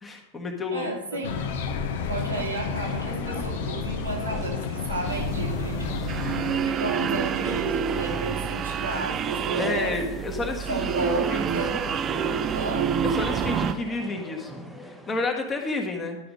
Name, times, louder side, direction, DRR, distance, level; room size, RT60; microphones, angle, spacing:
voice 1, 0.0-1.2 9.6-11.9 13.0-16.2, left 3 dB, 20° left, 3 dB, 1.3 m, -31 dB
voice 2, 0.7-1.4 2.1-6.1 6.6-10.0 10.7-11.7 12.5-12.9, right 2 dB, 80° right, -2 dB, 2.1 m, -32 dB
Air tone at a university campus quad with birds, 1.2-6.7, left 5 dB, 55° left, 0.8 m, -30 dB
sound 1, 2.8-15.3, equal, ahead, 0.9 m, -43 dB
sound 2, 5.1-13.7, right 7 dB, 30° right, 0.5 m, -28 dB
11.0 x 5.0 x 5.1 m, 1.0 s
figure-of-eight pair, 90°, 0 cm